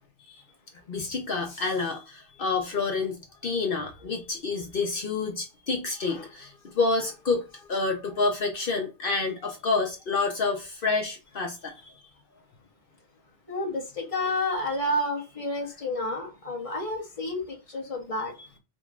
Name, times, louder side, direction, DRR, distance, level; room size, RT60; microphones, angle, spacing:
voice 1, 0.9-7.4 7.7-11.9, left 4 dB, 60° left, 1.0 m, -28 dB
voice 2, 13.5-18.3, left 1 dB, 35° left, 1.3 m, -30 dB
5.0 x 3.0 x 2.4 m
omnidirectional pair, 1.1 m